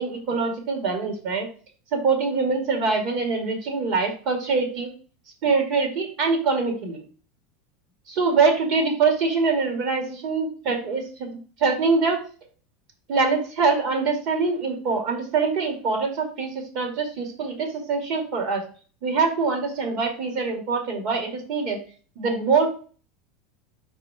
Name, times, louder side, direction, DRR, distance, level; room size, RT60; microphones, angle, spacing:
voice 1, 0.0-1.5 1.9-4.9 5.4-7.0 8.1-11.3 11.6-12.2 13.1-18.6 19.0-21.8 22.2-22.7, right 4 dB, 55° right, 2 dB, 2.2 m, -24 dB
4.8 x 4.5 x 4.8 m, 0.39 s
supercardioid pair, 140°, 0 cm